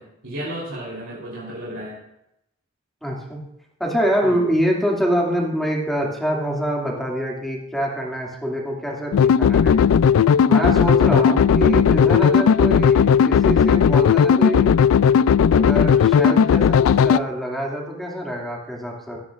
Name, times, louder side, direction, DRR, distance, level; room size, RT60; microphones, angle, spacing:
voice 1, 0.0-2.0 4.2-4.4 11.1-11.4, right 1 dB, 90° right, -6 dB, 3.7 m, -33 dB
voice 2, 3.0-3.4 3.8-9.9 10.4-14.8 15.5-19.2, equal, ahead, -2 dB, 2.5 m, -25 dB
sound 1, 9.1-17.2, left 7 dB, 80° left, 0.3 m, -16 dB
22.5 x 9.8 x 2.5 m, 0.82 s
head